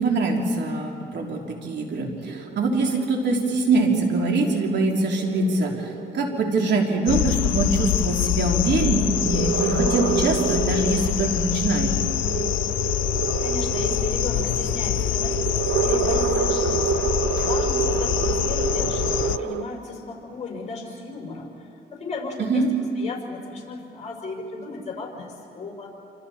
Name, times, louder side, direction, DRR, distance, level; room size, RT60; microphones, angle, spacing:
voice 1, 0.0-11.9 22.4-22.7, right 2 dB, 60° right, 1 dB, 3.4 m, -23 dB
sound 1, 2.3-19.6, right 7 dB, 80° right, 1.1 m, -29 dB
sound 2, 7.1-19.4, left 14 dB, 80° left, 0.5 m, -25 dB
voice 2, 13.4-22.6 23.0-25.9, left 4 dB, 35° left, -2 dB, 5.4 m, -35 dB
27.5 x 26.5 x 4.3 m, 2.6 s
cardioid pair, 90°, 20 cm